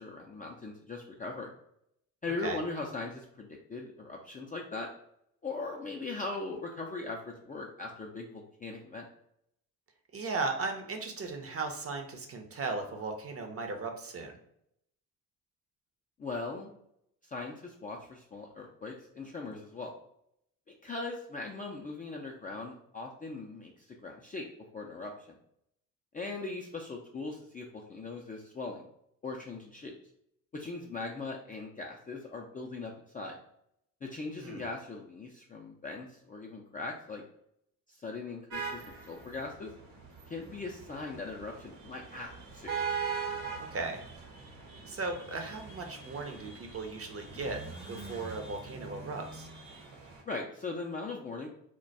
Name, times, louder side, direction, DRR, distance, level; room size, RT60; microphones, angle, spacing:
voice 1, 0.0-1.5 2.2-4.9 5.4-9.1 16.2-16.7 17.2-19.9 20.7-23.7 24.0-24.5 24.7-25.4 26.1-28.9 29.2-29.9 30.5-33.4 34.0-37.2 37.9-39.7 40.3-42.7 50.3-51.5, left 3 dB, 20° left, -1 dB, 0.4 m, -40 dB
voice 2, 10.1-14.4 34.4-34.6 43.7-44.0 44.9-47.6 47.9-49.5, right 3 dB, 30° right, 4 dB, 0.6 m, -36 dB
sound 1, 38.5-50.2, right 5 dB, 65° right, 1.0 m, -41 dB
2.2 x 2.2 x 3.9 m, 0.74 s
hypercardioid pair, 55°, 45 cm